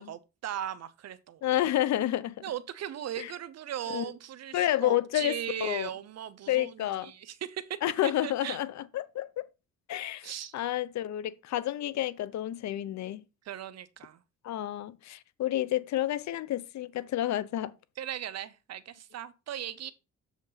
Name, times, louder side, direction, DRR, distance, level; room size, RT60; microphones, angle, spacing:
voice 1, 0.0-1.4 2.4-8.6 10.2-10.5 13.4-14.2 18.0-19.9, right 10 dB, 60° right, 0.8 m, -38 dB
voice 2, 1.4-2.4 3.2-3.3 3.9-4.1 4.5-5.9 6.5-7.1 7.8-9.5 9.9-13.2 14.4-17.7, left 13 dB, 65° left, 0.7 m, -30 dB
7.3 x 5.2 x 4.0 m
cardioid pair, 90°, 30 cm